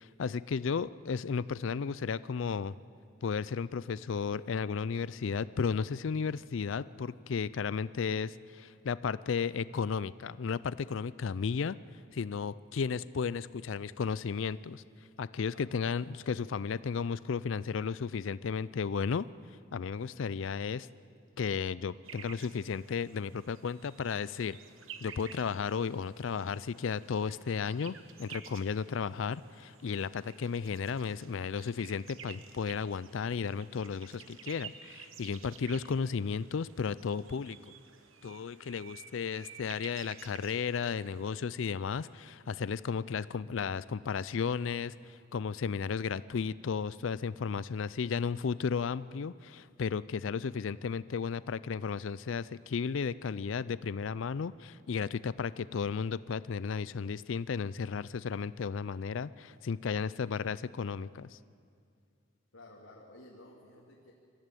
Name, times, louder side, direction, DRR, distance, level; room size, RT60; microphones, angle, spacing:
voice 1, 0.0-2.8 3.2-11.8 12.1-14.8 15.2-19.2 19.7-20.9 21.4-24.6 25.0-37.6 38.2-61.4, left 6 dB, 70° left, 18 dB, 0.4 m, -34 dB
sound 1, 22.0-41.4, right 8 dB, 80° right, 1.2 m, -52 dB
voice 2, 62.5-64.1, left 1 dB, 85° left, -3 dB, 2.5 m, -53 dB
22.5 x 14.5 x 9.1 m, 2.3 s
head